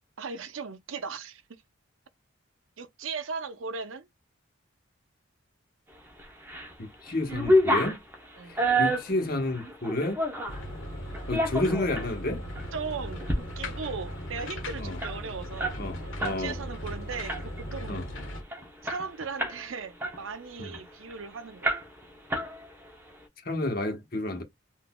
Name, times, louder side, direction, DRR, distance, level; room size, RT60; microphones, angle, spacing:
voice 1, 0.2-1.6 2.8-4.1 8.4-8.6 12.7-15.8 16.2-18.0 18.8-21.8, right 5 dB, 75° right, 0.6 m, -38 dB
sound 1, 6.2-6.7 7.0-10.6 11.1-12.1 12.5-12.7 13.1-13.4 13.7-13.8 14.1-16.4 16.7-16.9 17.3-17.7 18.2-18.3 18.5-19.6 20.0-21.2 21.6-22.0 22.3-22.9, equal, 10° right, 0.8 m, -28 dB
voice 2, 6.8-8.0 8.5-10.2 11.3-12.4 14.8-15.0 15.8-16.6 17.9-18.0 20.6-20.7 23.4-24.4, left 2 dB, 45° left, 1.0 m, -30 dB
sound 2, 10.5-18.4, equal, 70° left, 1.1 m, -38 dB
3.9 x 2.5 x 2.2 m
head